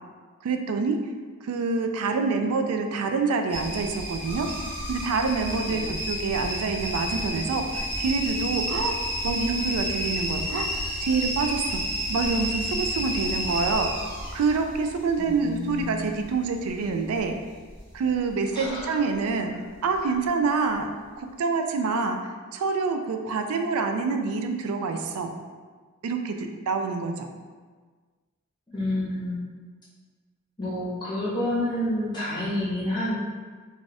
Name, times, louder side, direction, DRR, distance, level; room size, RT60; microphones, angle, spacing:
voice 1, 0.4-1.0 1.4-4.5 4.9-9.0 9.2-10.7 11.0-11.8 12.1-13.9 14.3-17.3 17.9-19.5 19.8-20.9 21.2-22.2 22.5-25.3 26.0-27.3, right 4 dB, 85° right, 5 dB, 0.3 m, -26 dB
sound 1, 3.5-18.4 18.6-19.3 19.8-20.3 20.7-20.8, equal, 10° right, 0.7 m, -31 dB
voice 2, 15.2-16.0 18.5-18.9 20.0-20.1 28.7-29.4 30.6-33.1, left 1 dB, 20° left, -9 dB, 0.9 m, -29 dB
2.4 x 2.3 x 4.0 m, 1.5 s
head